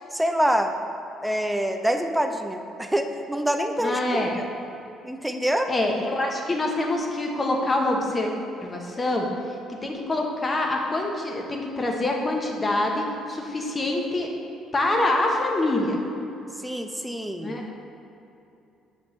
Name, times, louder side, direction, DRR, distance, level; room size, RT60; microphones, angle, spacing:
voice 1, 0.1-0.7 1.2-4.4 5.0-5.7 16.6-17.7, equal, 5° right, 5 dB, 0.5 m, -26 dB
voice 2, 3.8-4.4 5.7-8.3 8.6-9.3 9.7-14.3 14.7-16.0 17.4-17.6, left 2 dB, 30° left, 1 dB, 0.9 m, -25 dB
6.3 x 5.1 x 3.1 m, 2.9 s
supercardioid pair, 80°, 0 cm